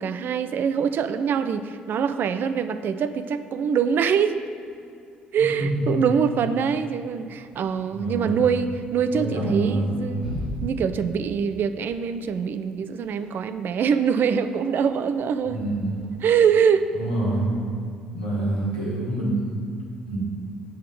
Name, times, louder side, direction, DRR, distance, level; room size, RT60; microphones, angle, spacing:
voice 1, 0.0-4.4 5.3-10.2 10.6-15.6 16.2-16.9, right 7 dB, 45° right, 11 dB, 0.4 m, -24 dB
voice 2, 5.4-6.1 7.9-8.4 9.1-10.2 15.4-16.0 16.9-17.5 18.1-19.4 20.1-20.2, right 1 dB, 90° left, -7 dB, 1.5 m, -26 dB
sound 1, 7.5-16.3, equal, 75° right, 1.0 m, -41 dB
7.7 x 3.7 x 6.6 m, 2.4 s
figure-of-eight pair, 50°, 5 cm